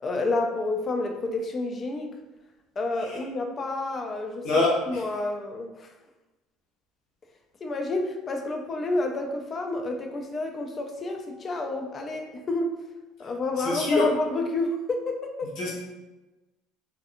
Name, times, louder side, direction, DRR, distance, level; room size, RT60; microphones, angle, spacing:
voice 1, 0.0-2.1 2.8-4.5 4.9-5.9 7.6-12.7 13.2-15.5, left 2 dB, 25° left, 3 dB, 0.3 m, -29 dB
voice 2, 4.4-5.0 13.6-14.1 15.6-15.7, left 2 dB, 65° left, -3 dB, 0.9 m, -24 dB
2.6 x 2.5 x 2.4 m, 1.1 s
cardioid pair, 140°, 0 cm